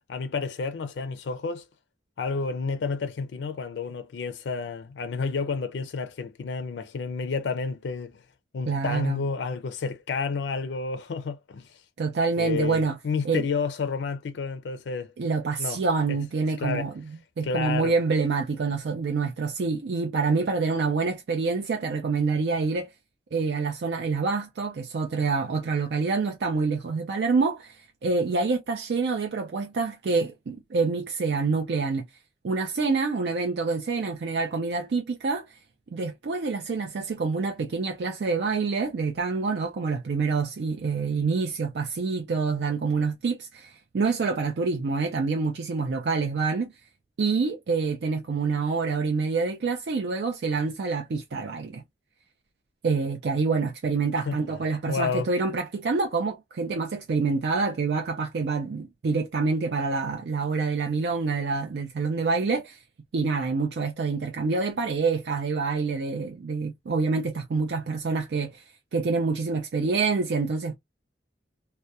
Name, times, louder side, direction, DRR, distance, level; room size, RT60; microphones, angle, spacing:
voice 1, 0.1-1.6 2.2-8.2 8.5-11.6 12.4-15.1 15.6-15.8 16.1-16.2 16.6-16.9 17.4-17.9 54.3-54.4 54.9-55.3, left 4 dB, 85° left, 0.4 m, -30 dB
voice 2, 8.7-9.2 12.0-13.0 13.2-13.5 15.2-22.9 23.3-32.1 32.4-35.6 35.9-46.7 47.2-51.8 52.8-62.8 63.1-68.6 68.9-70.7, right 4 dB, 70° right, 0.4 m, -27 dB
2.2 x 2.1 x 2.6 m
head